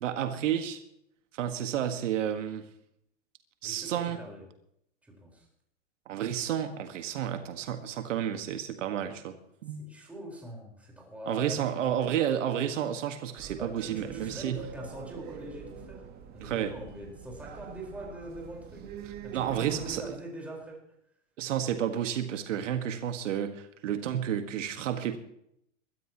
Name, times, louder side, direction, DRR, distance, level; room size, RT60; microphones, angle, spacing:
voice 1, 0.0-0.8 1.3-2.7 3.6-4.2 6.1-9.4 9.6-9.9 11.3-14.6 16.4-16.7 19.3-20.0 21.4-25.2, right 10 dB, 75° right, 7 dB, 1.7 m, -31 dB
voice 2, 3.6-4.4 5.0-5.5 9.7-11.9 13.6-16.1 16.3-18.8 19.2-20.8, equal, 5° right, -2 dB, 4.5 m, -43 dB
sound 1, 13.4-20.2, right 7 dB, 25° right, 1.4 m, -44 dB
22.0 x 13.0 x 3.0 m, 0.73 s
supercardioid pair, 150°, 37 cm